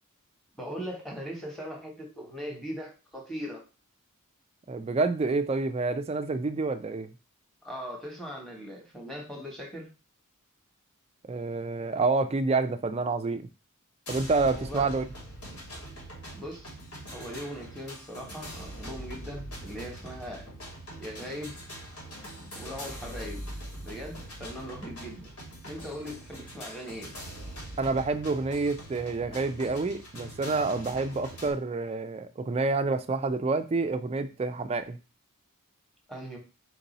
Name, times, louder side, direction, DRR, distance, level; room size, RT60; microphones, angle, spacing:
voice 1, 0.5-3.6 7.6-9.9 14.5-14.9 16.3-16.7 17.1-20.5 21.0-21.6 22.5-23.5 23.8-25.3 25.6-27.1 36.1-36.4, equal, ahead, -1 dB, 1.1 m, -39 dB
voice 2, 4.7-7.1 11.3-13.5 14.1-15.0 27.8-35.0, right 3 dB, 25° right, 10 dB, 0.3 m, -28 dB
sound 1, 14.1-31.5, equal, 90° left, 2.4 m, -43 dB
4.5 x 2.7 x 4.0 m, 0.32 s
head